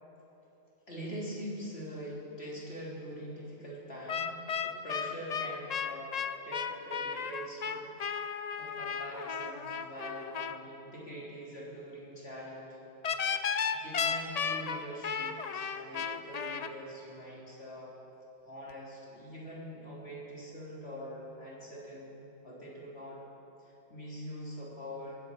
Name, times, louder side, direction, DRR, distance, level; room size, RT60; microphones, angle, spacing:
voice 1, 0.9-4.4 4.6-6.1 6.4-7.9 8.6-12.8 13.8-17.9 18.4-23.2 23.6-25.3, equal, 60° left, -5 dB, 3.7 m, -43 dB
sound 1, 4.1-10.6 13.0-16.7, left 6 dB, 45° left, 0.6 m, -34 dB
19.5 x 14.5 x 4.9 m, 3.0 s
omnidirectional pair, 1.2 m